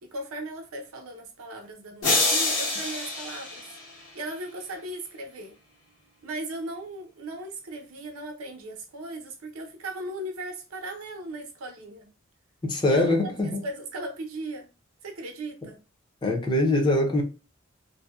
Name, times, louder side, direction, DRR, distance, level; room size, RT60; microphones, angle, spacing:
voice 1, 0.0-3.7 4.1-5.5 6.2-12.1 12.9-13.2 13.6-14.7 15.0-15.8, right 1 dB, 85° right, 0.6 m, -37 dB
sound 1, 2.0-4.3, left 2 dB, 65° left, 1.1 m, -27 dB
voice 2, 12.6-13.6 16.2-17.2, left 1 dB, 20° left, 0.5 m, -23 dB
2.6 x 2.1 x 2.3 m
head